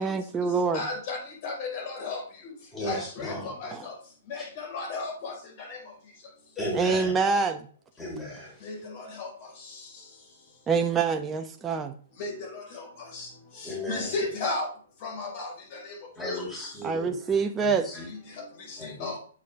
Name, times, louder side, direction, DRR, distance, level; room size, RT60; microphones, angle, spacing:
voice 1, 0.0-0.8 3.7-3.8 6.7-7.7 10.7-12.0 16.8-17.9, right 5 dB, 15° right, 5 dB, 0.8 m, -26 dB
voice 2, 0.7-2.2 2.8-3.9 4.3-5.8 8.6-9.3 12.2-12.8 13.1-13.3 13.6-14.7 15.0-16.0 18.7-19.2, left 3 dB, 50° left, 2 dB, 5.1 m, -34 dB
voice 3, 2.7-3.7 4.4-4.5 6.6-7.1 8.0-8.5 13.6-14.1 16.2-17.1 17.6-18.1 18.8-19.1, left 1 dB, 10° left, -3 dB, 4.6 m, -35 dB
8.4 x 7.5 x 3.6 m, 0.43 s
hypercardioid pair, 135°, 0 cm